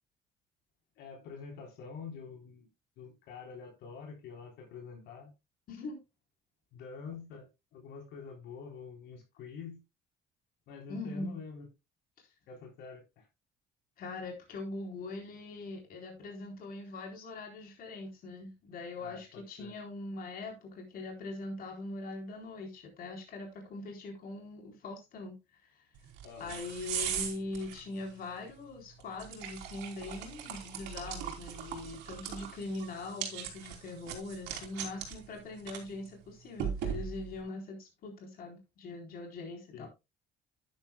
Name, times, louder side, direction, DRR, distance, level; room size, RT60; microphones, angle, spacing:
voice 1, 1.0-2.7 3.0-5.3 6.7-9.8 10.7-11.7 12.5-13.3 19.0-19.7 26.2-26.6 39.7-39.9, left 5 dB, 80° left, 3.7 m, -46 dB
voice 2, 5.7-6.0 10.9-11.4 12.2-12.3 14.0-25.4 26.4-39.9, left 2 dB, 60° left, 3.8 m, -42 dB
sound 1, 26.0-37.4, right 8 dB, 90° right, 3.1 m, -41 dB
11.0 x 10.5 x 2.2 m
cardioid pair, 110°, 17 cm